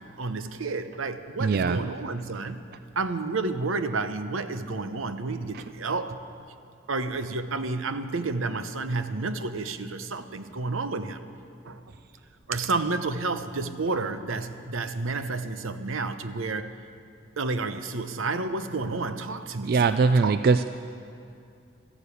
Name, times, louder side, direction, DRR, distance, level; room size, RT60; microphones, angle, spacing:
voice 1, 0.2-2.6 3.0-6.2 6.9-11.2 11.6-11.8 12.5-16.7 17.4-19.9 20.2-20.4, right 3 dB, 80° right, 10 dB, 0.8 m, -30 dB
voice 2, 1.4-1.8 19.7-20.8, right 4 dB, 45° right, 11 dB, 0.3 m, -21 dB
13.5 x 11.5 x 8.3 m, 2.5 s
head